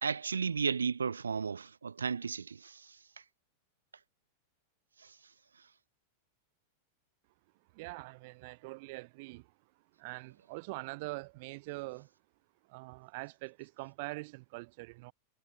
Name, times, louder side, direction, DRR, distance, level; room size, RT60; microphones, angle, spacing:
voice 1, 0.0-2.9, right 5 dB, 75° right, 1.4 m, -34 dB
voice 2, 7.7-9.5 10.0-12.1 12.7-15.1, right 25 dB, 50° right, 3.6 m, -43 dB
figure-of-eight pair, 90°, 0 cm